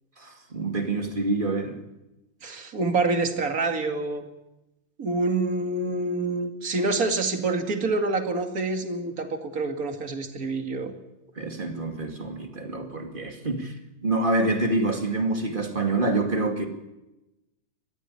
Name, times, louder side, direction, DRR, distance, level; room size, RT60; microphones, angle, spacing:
voice 1, 0.2-1.8 11.4-13.8 14.0-16.7, right 2 dB, 25° right, 2.4 m, -26 dB
voice 2, 2.4-4.2 5.0-10.9, right 3 dB, 50° right, 2.5 m, -27 dB
22.0 x 13.5 x 9.9 m
omnidirectional pair, 2.1 m